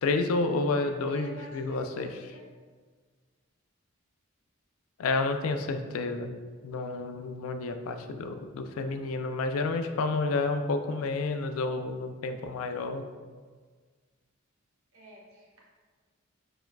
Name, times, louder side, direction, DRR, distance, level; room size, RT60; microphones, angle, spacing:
voice 1, 0.0-2.1 5.0-6.3 6.6-13.0, left 3 dB, 85° left, 7 dB, 0.4 m, -30 dB
voice 2, 0.7-2.4 14.9-15.6, right 1 dB, 85° right, -4 dB, 1.3 m, -48 dB
4.5 x 4.3 x 2.2 m, 1.5 s
head